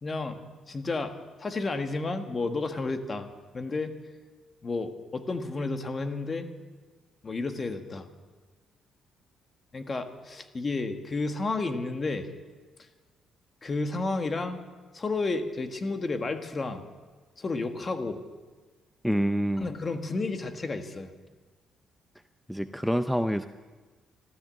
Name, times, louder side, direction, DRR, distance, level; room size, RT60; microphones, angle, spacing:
voice 1, 0.0-3.3 3.5-3.9 4.6-6.5 7.2-8.1 9.7-12.3 13.6-14.6 14.9-16.9 17.4-18.2 19.6-21.1, left 3 dB, 35° left, 7 dB, 1.5 m, -31 dB
voice 2, 19.0-19.7 22.5-23.5, equal, ahead, 9 dB, 0.5 m, -26 dB
13.5 x 13.0 x 7.6 m, 1.4 s
cardioid pair, 90°, 0 cm